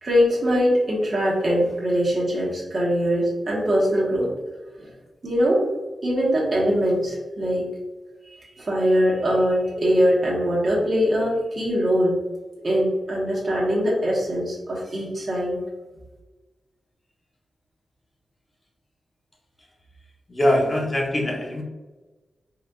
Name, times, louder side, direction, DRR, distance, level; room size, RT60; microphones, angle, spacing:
voice 1, 0.0-4.3 4.8-4.9 5.2-5.6 6.0-7.7 8.6-12.2 12.6-15.6, equal, 40° right, -6 dB, 1.0 m, -22 dB
voice 2, 20.3-21.6, left 1 dB, 20° left, -1 dB, 0.7 m, -22 dB
3.8 x 2.4 x 2.3 m, 1.2 s
wide cardioid pair, 130°, 0 cm